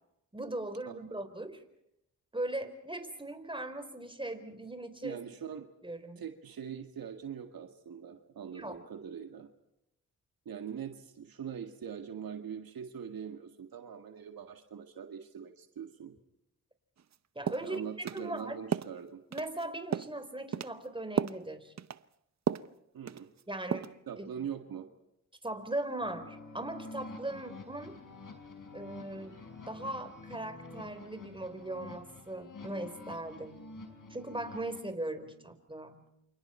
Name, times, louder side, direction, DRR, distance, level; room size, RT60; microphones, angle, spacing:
voice 1, 0.3-1.6 2.3-5.2 5.8-6.2 8.5-8.8 17.4-17.8 18.1-18.6 19.3-21.7 23.5-23.9 24.2-24.5 25.4-28.0 28.7-29.4 29.7-33.6 34.1-36.0, right 1 dB, 15° right, 8 dB, 4.1 m, -39 dB
voice 2, 5.0-5.6 6.2-9.5 10.5-16.1 17.6-19.2 22.9-23.3 24.1-24.9, right 8 dB, 75° right, 6 dB, 1.9 m, -42 dB
sound 1, 17.0-17.1 17.5-17.7 18.1-18.2 18.7-18.9 19.3-19.6 19.9-20.2 20.5-20.8 21.2-21.4 21.8-22.0 22.5-22.7 23.1-23.4 23.7-24.0, right 8 dB, 50° right, 0.8 m, -33 dB
sound 2, 26.0-34.8, left 3 dB, 60° left, 5.5 m, -48 dB
29.0 x 26.5 x 4.4 m, 0.83 s
supercardioid pair, 50°, 36 cm